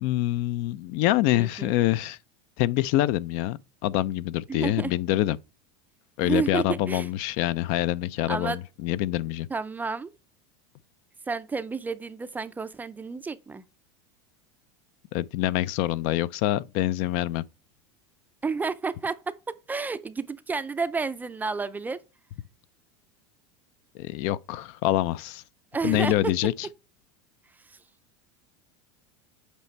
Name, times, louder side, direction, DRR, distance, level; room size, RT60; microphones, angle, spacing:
voice 1, 0.0-2.2 2.6-5.4 6.2-9.5 15.1-17.4 23.9-25.4 25.8-26.7, left 15 dB, 55° left, 0.4 m, -26 dB
voice 2, 1.3-1.7 4.5-4.9 6.2-7.1 8.3-8.6 9.5-10.1 11.3-13.6 18.4-19.3 19.7-22.0 25.7-26.1 27.7-27.8, right 4 dB, 10° right, 0.4 m, -30 dB
8.2 x 4.4 x 3.1 m
supercardioid pair, 135°, 15 cm